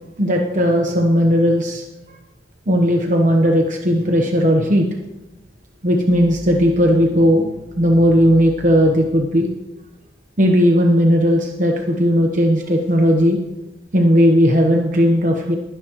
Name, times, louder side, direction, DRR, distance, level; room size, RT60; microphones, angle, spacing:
voice 1, 0.2-1.8 2.7-4.8 5.8-7.5 7.8-9.5 10.4-13.4 13.9-15.6, equal, 45° right, 1 dB, 1.1 m, -16 dB
20.5 x 10.0 x 3.1 m, 1.0 s
head